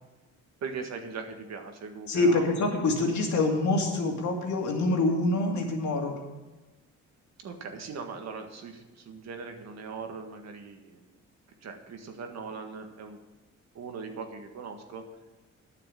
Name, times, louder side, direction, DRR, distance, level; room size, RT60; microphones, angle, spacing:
voice 1, 0.6-2.6 7.4-11.1 11.6-13.2 13.8-15.1, right 5 dB, 60° right, 5 dB, 1.7 m, -40 dB
voice 2, 2.1-6.2, left 2 dB, 70° left, 1 dB, 2.4 m, -26 dB
9.5 x 6.8 x 8.6 m, 1.1 s
cardioid pair, 90°, 30 cm